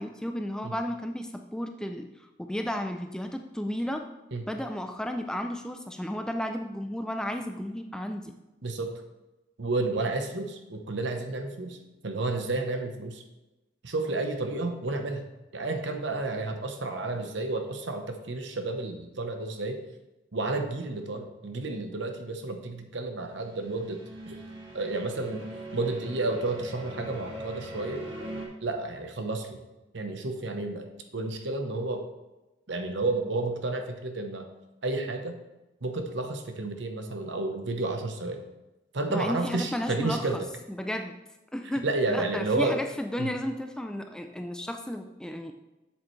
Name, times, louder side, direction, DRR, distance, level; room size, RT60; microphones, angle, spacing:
voice 1, 0.0-4.1 4.5-8.3 39.1-40.3 40.8-41.2 41.5-45.5, equal, 5° left, 5 dB, 0.3 m, -33 dB
voice 2, 8.6-8.9 9.6-11.8 12.0-13.2 13.8-15.2 15.5-19.8 20.3-24.0 24.3-24.4 24.7-25.4 25.7-28.0 28.6-29.6 29.9-32.0 32.7-34.5 34.8-35.4 35.8-38.4 38.9-40.4 41.8-42.8 43.2-43.3, right 2 dB, 70° right, 5 dB, 0.9 m, -31 dB
sound 1, 23.4-28.5, right 1 dB, 90° right, 1.5 m, -41 dB
7.7 x 7.3 x 3.2 m, 1.0 s
head